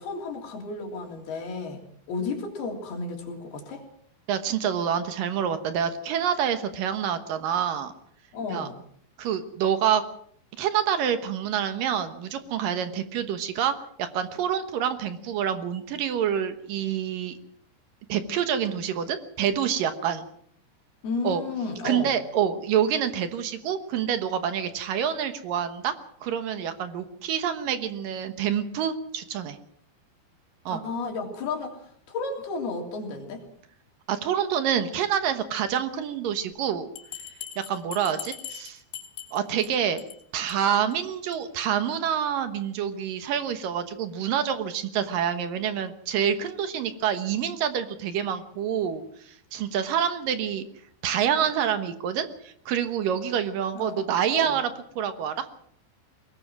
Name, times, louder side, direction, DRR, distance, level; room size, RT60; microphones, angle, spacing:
voice 1, 0.0-1.8 2.1-3.8 8.3-8.8 21.0-22.1 30.7-31.8 32.1-33.4 53.7-54.5, left 4 dB, 60° left, 2 dB, 4.9 m, -33 dB
voice 2, 4.3-7.9 8.5-8.7 9.2-10.0 10.6-17.4 18.1-20.3 21.2-21.4 21.8-25.9 26.2-29.6 30.7-30.8 34.1-36.9 37.6-38.8 39.3-40.0 40.3-50.6 51.0-55.5, right 8 dB, 65° right, 9 dB, 2.4 m, -27 dB
Bell, 37.0-39.7 40.0-40.2 40.5-40.6 40.9-41.0 41.3-41.4, left 10 dB, 75° left, 5.3 m, -40 dB
22.5 x 19.5 x 6.1 m, 0.64 s
omnidirectional pair, 5.2 m